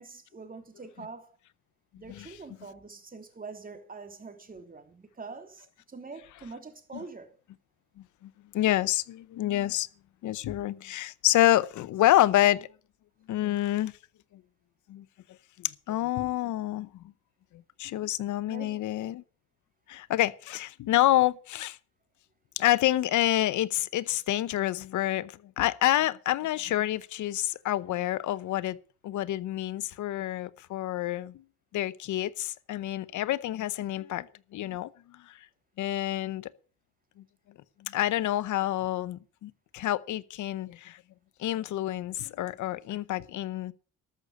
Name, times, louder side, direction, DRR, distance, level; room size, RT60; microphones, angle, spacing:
voice 1, 0.0-1.3 2.0-7.3 18.4-18.8, right 4 dB, 30° right, 2.9 m, -44 dB
voice 2, 8.0-9.9 10.2-12.7 13.3-13.9 14.9-15.1 15.6-16.9 17.8-19.2 19.9-21.8 22.6-28.8 29.0-31.3 31.7-34.3 34.5-35.3 35.8-36.5 37.2-37.3 37.8-41.0 41.4-43.7, left 14 dB, 75° left, 0.8 m, -28 dB
13.0 x 6.6 x 8.4 m
cardioid pair, 90°, 30 cm